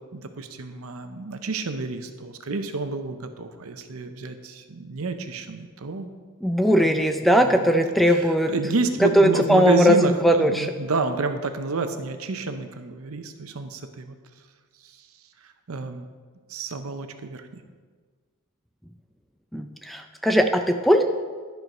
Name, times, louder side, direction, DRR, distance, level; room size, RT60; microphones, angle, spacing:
voice 1, 0.1-6.1 6.8-7.0 7.4-14.2 15.7-16.1 16.5-17.6, right 3 dB, 70° right, 8 dB, 0.7 m, -29 dB
voice 2, 6.4-8.5 9.0-10.7 19.5-21.0, equal, ahead, 6 dB, 0.3 m, -19 dB
11.5 x 4.6 x 5.4 m, 1.5 s
head